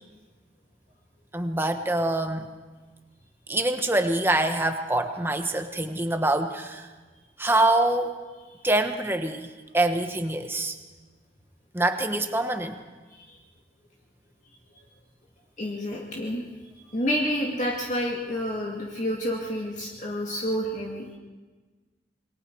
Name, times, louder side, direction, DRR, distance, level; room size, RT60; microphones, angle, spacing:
voice 1, 1.3-2.5 3.5-6.9 7.4-8.1 8.6-9.5 9.7-10.7 11.7-12.8, right 2 dB, 10° right, 6 dB, 1.2 m, -25 dB
voice 2, 15.6-16.4 16.9-21.1, equal, 40° left, -2 dB, 2.2 m, -29 dB
28.0 x 22.5 x 4.7 m, 1.3 s
head